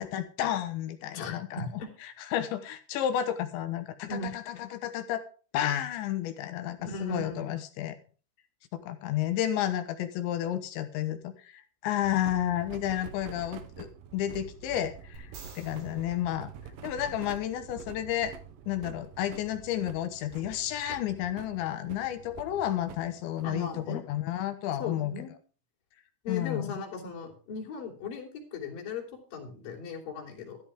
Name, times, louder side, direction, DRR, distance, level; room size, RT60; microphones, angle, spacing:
voice 1, 0.0-1.7 2.0-5.2 5.5-8.0 8.7-13.9 14.1-15.3 15.6-16.5 16.8-18.3 18.7-25.1 26.3-26.7, left 11 dB, 75° left, 9 dB, 3.1 m, -31 dB
voice 2, 1.1-1.9 4.1-4.3 6.8-7.5 23.4-24.0 24.8-25.3 26.2-29.0 29.3-30.6, left 3 dB, 50° left, -1 dB, 4.6 m, -37 dB
sound 1, 12.0-23.9, right 7 dB, 85° right, 1.9 m, -47 dB
sound 2, 15.1-17.4 20.8-20.9, right 4 dB, 60° right, 5.5 m, -52 dB
13.5 x 13.0 x 3.6 m, 0.37 s
omnidirectional pair, 5.7 m